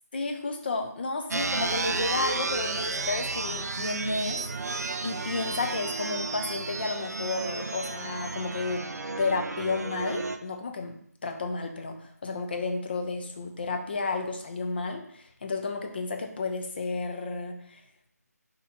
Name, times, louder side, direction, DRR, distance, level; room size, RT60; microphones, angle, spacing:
voice 1, 0.1-4.4 5.0-8.8 9.2-17.8, left 3 dB, 35° left, 5 dB, 0.5 m, -32 dB
sound 1, 1.3-10.4, right 3 dB, 70° right, 0.4 m, -32 dB
4.0 x 2.9 x 3.6 m, 0.66 s
figure-of-eight pair, 160°, 9 cm